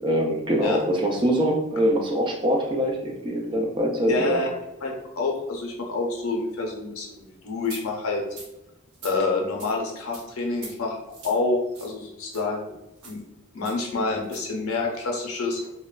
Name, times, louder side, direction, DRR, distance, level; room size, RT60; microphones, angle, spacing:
voice 1, 0.0-4.4, equal, 20° right, 0 dB, 0.3 m, -23 dB
voice 2, 4.1-4.5 4.8-8.2 9.0-11.0 11.2-12.7 13.0-13.2 13.5-15.7, left 3 dB, 70° left, 0 dB, 0.6 m, -27 dB
sound 1, 7.6-7.8 8.3-8.5 8.9-9.2 9.6-9.7 10.1-10.2 10.6-10.7 11.1-11.4 11.7-11.9 12.3-12.4 13.0-13.2 13.6-13.8 14.2-14.4, right 3 dB, 85° right, 0.8 m, -42 dB
2.8 x 2.1 x 2.3 m, 0.93 s
head